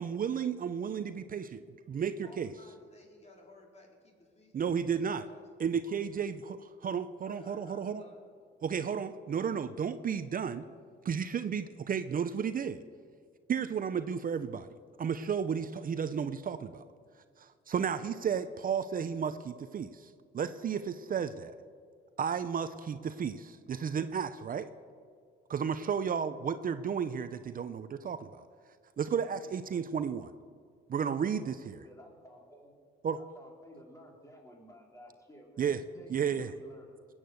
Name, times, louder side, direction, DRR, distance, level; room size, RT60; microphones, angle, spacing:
voice 1, 0.0-1.6 1.9-2.5 4.5-5.3 5.6-8.0 8.6-10.6 11.0-12.8 13.5-14.7 15.0-16.8 17.4-21.5 22.2-24.7 25.5-28.4 29.0-30.3 30.9-31.9 33.0-33.2 35.6-35.8 36.1-36.5, right 7 dB, 45° right, 12 dB, 0.7 m, -33 dB
voice 2, 2.0-5.4 5.8-6.2 7.2-8.5, left 2 dB, 35° left, 0 dB, 4.1 m, -57 dB
voice 3, 31.8-32.8 33.2-37.1, equal, 15° left, 0 dB, 4.1 m, -54 dB
20.0 x 8.9 x 7.9 m, 2.1 s
cardioid pair, 90°, 20 cm